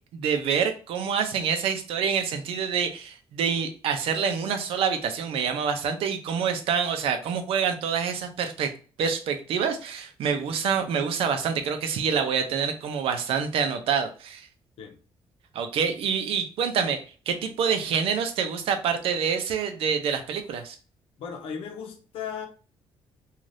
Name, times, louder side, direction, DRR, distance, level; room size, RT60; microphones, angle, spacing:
voice 1, 0.1-8.7 9.0-14.5 15.5-20.8, right 6 dB, 80° right, 0.6 m, -27 dB
voice 2, 21.2-22.5, left 7 dB, 80° left, 0.7 m, -36 dB
2.6 x 2.4 x 3.2 m
cardioid pair, 155°, 10 cm